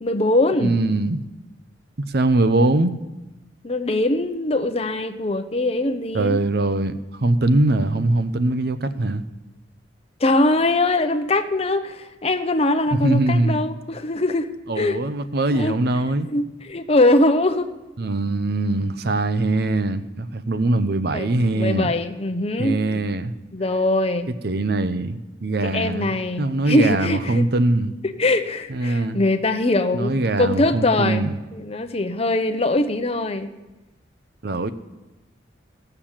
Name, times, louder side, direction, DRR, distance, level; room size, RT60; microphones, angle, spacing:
voice 1, 0.0-0.7 3.6-6.4 10.2-14.5 14.8-15.0 15.5-15.7 16.3-17.7 21.1-22.8 23.5-24.3 25.6-27.5 28.0-33.5, left 2 dB, 35° left, 8 dB, 0.8 m, -22 dB
voice 2, 0.6-1.2 2.1-2.9 6.1-9.2 12.9-13.6 14.7-16.3 18.0-21.9 22.6-23.3 24.4-27.9 28.7-29.2 29.9-31.3 34.4-34.7, right 2 dB, 60° right, 12 dB, 0.7 m, -22 dB
16.5 x 6.8 x 7.4 m, 1.0 s
head